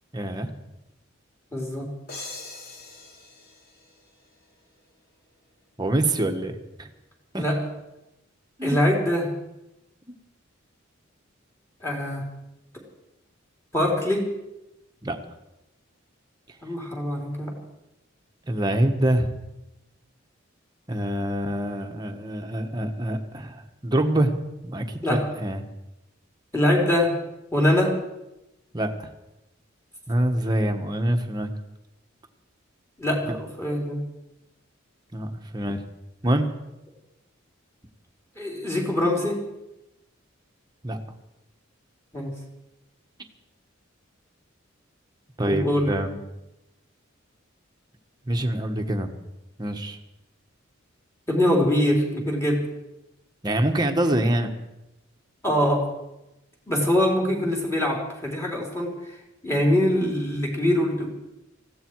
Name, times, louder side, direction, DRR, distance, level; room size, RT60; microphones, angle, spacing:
voice 1, 0.1-0.5 5.8-6.9 7.3-7.4 8.6-8.8 10.1-10.2 15.0-15.2 18.5-19.3 20.9-24.3 24.6-25.6 28.7-28.9 30.1-31.5 33.3-33.4 35.1-35.8 36.2-36.5 40.8-41.0 45.4-46.2 48.3-49.1 49.6-50.0 53.4-54.5, right 1 dB, 20° right, 4 dB, 1.4 m, -25 dB
voice 2, 1.5-1.9 7.4-7.6 8.6-9.3 11.8-12.2 13.7-14.2 16.6-17.5 25.0-25.2 26.5-27.1 27.5-27.9 33.0-34.0 38.4-39.4 42.1-42.3 45.5-45.9 51.3-52.6 55.4-55.8 56.7-58.9 59.4-61.1, left 1 dB, 15° left, -1 dB, 3.7 m, -23 dB
sound 1, 2.1-4.8, left 3 dB, 50° left, 3.1 m, -42 dB
19.5 x 15.5 x 4.7 m, 0.94 s
head